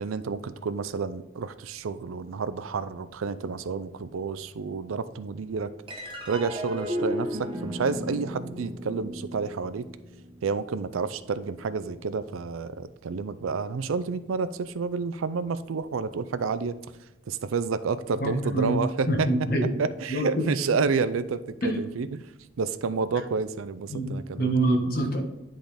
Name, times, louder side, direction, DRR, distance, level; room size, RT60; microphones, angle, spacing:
voice 1, 0.0-5.7 6.3-9.8 10.4-16.8 17.3-19.3 19.8-22.2 22.6-24.5, right 5 dB, 85° right, 13 dB, 0.4 m, -30 dB
sound 1, 5.9-12.6, equal, 25° right, 1.0 m, -36 dB
voice 2, 18.2-18.7 19.1-19.7 20.1-20.3 21.6-21.8 23.9-24.1 24.4-25.2, right 1 dB, 45° left, 1 dB, 1.4 m, -25 dB
10.0 x 3.8 x 3.4 m, 1.0 s
head